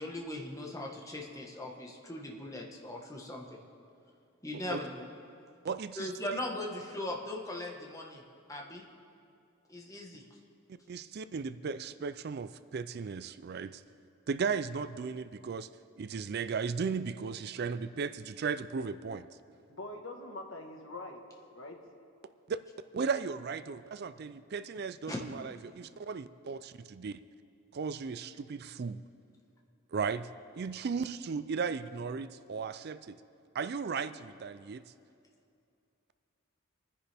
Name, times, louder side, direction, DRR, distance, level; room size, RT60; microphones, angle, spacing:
voice 1, 0.0-3.6 4.4-5.1 5.9-8.2 8.5-8.8 9.7-10.2 25.1-25.2, left 1 dB, 15° left, -1 dB, 1.3 m, -39 dB
voice 2, 5.6-6.4 10.9-13.8 14.3-15.7 16.0-19.3 22.5-22.6 22.9-27.2 27.7-29.0 29.9-30.3 30.5-33.2 33.5-34.8, right 5 dB, 50° right, 13 dB, 0.4 m, -36 dB
voice 3, 19.7-21.2 21.5-21.8, left 2 dB, 65° left, 3 dB, 1.5 m, -43 dB
26.0 x 10.0 x 3.5 m, 2.5 s
head